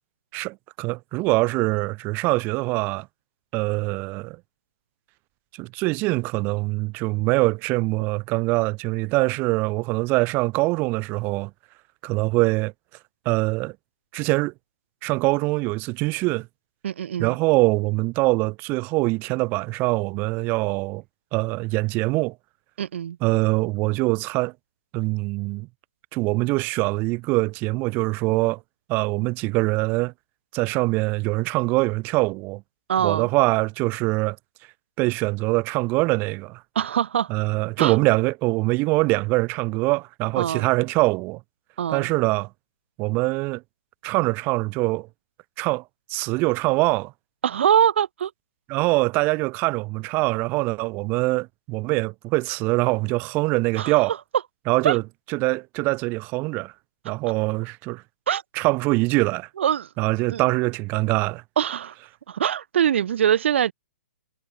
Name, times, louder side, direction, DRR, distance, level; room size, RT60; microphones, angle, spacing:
voice 1, 0.3-3.1 3.5-4.4 5.5-11.5 12.0-12.7 13.3-13.8 14.1-14.5 15.0-16.5 17.2-21.0 21.3-22.3 23.2-24.5 24.9-25.7 26.1-28.6 28.9-30.1 30.5-32.6 33.0-34.4 35.0-36.6 37.3-41.4 41.9-42.5 43.0-43.6 44.0-45.1 45.6-45.8 46.1-47.1 48.7-54.1 54.7-55.0 55.3-56.7 57.0-58.0 58.6-59.5 60.0-61.4, right 24 dB, 30° right, 0.6 m, -23 dB
voice 2, 16.8-17.4 22.8-23.2 32.9-33.3 36.8-37.3 37.8-38.0 40.4-40.7 41.8-42.1 47.4-48.3 53.8-54.0 54.8-55.0 58.3-58.4 59.6-59.9 60.3-60.4 61.6-61.9 62.3-63.7, right 9 dB, 70° right, 0.5 m, -23 dB
hypercardioid pair, 140°, 7 cm